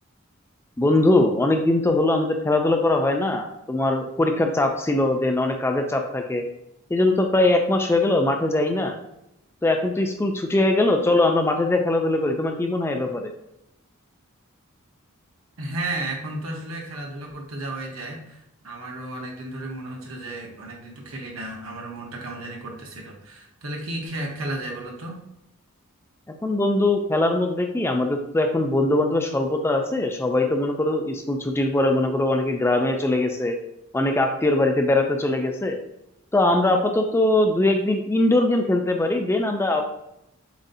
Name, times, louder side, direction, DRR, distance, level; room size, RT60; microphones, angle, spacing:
voice 1, 0.8-6.4 6.9-9.0 9.6-13.3 26.4-33.6 33.9-35.8 36.3-39.8, left 2 dB, 10° left, 4 dB, 0.3 m, -21 dB
voice 2, 15.6-25.2, right 2 dB, 75° right, 0 dB, 1.1 m, -33 dB
7.1 x 2.7 x 2.7 m, 0.84 s
head